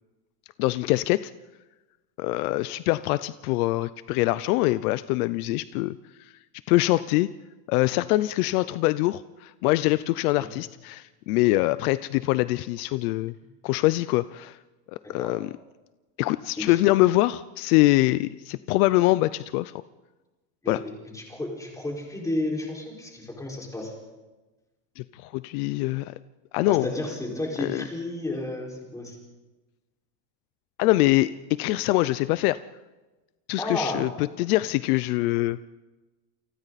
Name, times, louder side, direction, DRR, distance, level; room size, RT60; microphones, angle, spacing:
voice 1, 0.6-1.3 2.2-6.0 6.7-7.3 7.7-13.3 13.6-14.6 15.1-15.5 16.2-19.7 20.7-20.8 25.0-26.1 26.5-26.9 27.6-27.8 30.8-32.6 33.5-35.6, left 18 dB, 70° left, 15 dB, 0.7 m, -24 dB
voice 2, 21.1-23.9 26.7-29.1 33.6-34.1, left 1 dB, 5° left, -1 dB, 5.1 m, -32 dB
29.0 x 24.5 x 4.2 m, 1.2 s
cardioid pair, 160°, 47 cm